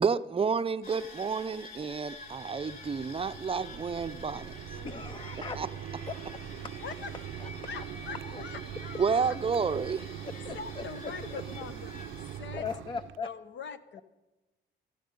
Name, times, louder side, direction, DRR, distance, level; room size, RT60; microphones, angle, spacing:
voice 1, 0.0-4.5 5.6-5.7 9.0-10.0, right 5 dB, 30° right, 13 dB, 0.6 m, -30 dB
sound 1, 0.8-12.4, left 2 dB, 45° left, 3.2 m, -48 dB
Mechanisms, 2.2-13.2, right 11 dB, 85° right, 0.5 m, -42 dB
voice 2, 4.8-5.6 6.1-6.2 7.4-8.5 10.4-10.8 11.2-11.3 12.5-13.3, left 5 dB, 25° left, 13 dB, 0.5 m, -39 dB
voice 3, 6.8-7.2 7.7-9.4 10.5-12.0 12.3-12.6 13.2-14.0, left 6 dB, 65° left, 12 dB, 1.0 m, -43 dB
16.0 x 13.5 x 5.3 m, 1.1 s
cardioid pair, 90°, 20 cm